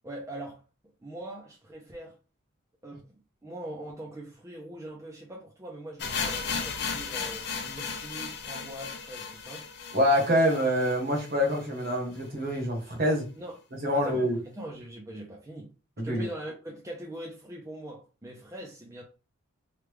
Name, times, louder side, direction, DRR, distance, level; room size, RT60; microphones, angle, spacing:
voice 1, 0.0-0.6 1.0-2.2 2.8-3.1 3.4-9.7 13.3-13.6 13.9-15.7 16.0-19.0, right 1 dB, 15° right, 0.5 m, -42 dB
sound 1, 6.0-11.9 12.2-12.3 12.5-12.6 13.2-13.3, left 5 dB, 50° left, 0.5 m, -35 dB
voice 2, 9.9-13.3 13.8-14.4 16.0-16.3, equal, 45° right, 1.0 m, -25 dB
3.1 x 2.3 x 3.3 m
head